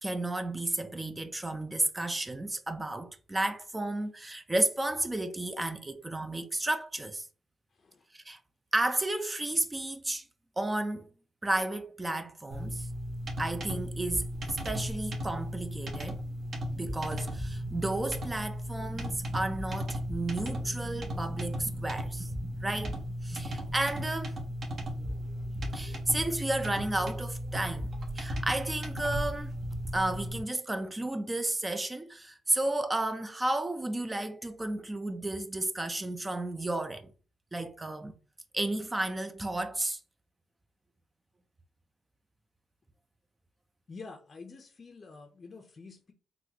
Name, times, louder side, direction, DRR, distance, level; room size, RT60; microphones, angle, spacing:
voice 1, 0.0-7.3 8.1-8.4 8.7-10.2 10.6-11.1 11.4-12.9 13.4-14.3 14.6-16.2 16.7-24.4 25.7-27.9 28.2-29.6 29.9-37.1 37.5-38.1 38.5-40.0, right 2 dB, 15° right, 0.4 m, -32 dB
voice 2, 7.7-8.1 43.9-46.1, left 4 dB, 40° left, 0.5 m, -48 dB
sound 1, 12.5-30.4, equal, 50° right, 1.0 m, -36 dB
3.9 x 2.3 x 2.8 m
cardioid pair, 90°, 0 cm